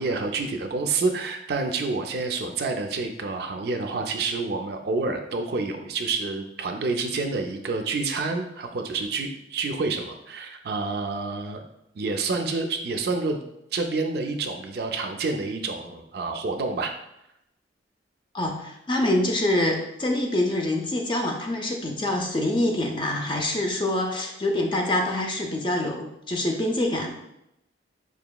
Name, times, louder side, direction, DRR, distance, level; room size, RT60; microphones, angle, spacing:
voice 1, 0.0-11.6 11.9-13.4 13.7-16.9, right 3 dB, 55° right, 4 dB, 0.4 m, -28 dB
voice 2, 18.3-27.1, left 1 dB, 25° left, 2 dB, 0.4 m, -25 dB
5.0 x 2.9 x 2.2 m, 0.83 s
head